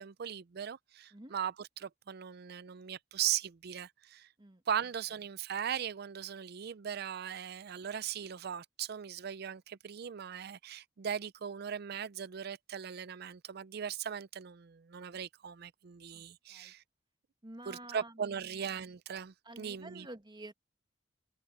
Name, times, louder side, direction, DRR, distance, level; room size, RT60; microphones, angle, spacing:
voice 1, 0.0-4.3 4.7-16.8 17.7-20.1, right 8 dB, 60° right, 0.5 m, -39 dB
voice 2, 17.4-18.6 19.4-20.5, right 1 dB, 25° right, 1.3 m, -50 dB
open air
head